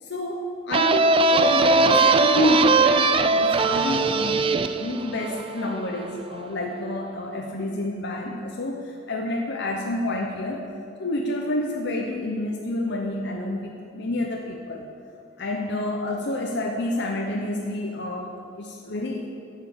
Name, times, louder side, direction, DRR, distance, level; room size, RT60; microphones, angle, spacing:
voice 1, 0.1-10.6 11.0-14.9 15.4-18.3 18.6-19.3, left 1 dB, 65° left, 0 dB, 0.8 m, -28 dB
sound 1, 0.7-6.2, right 3 dB, 30° right, 0.3 m, -20 dB
8.3 x 7.5 x 6.7 m, 2.3 s
head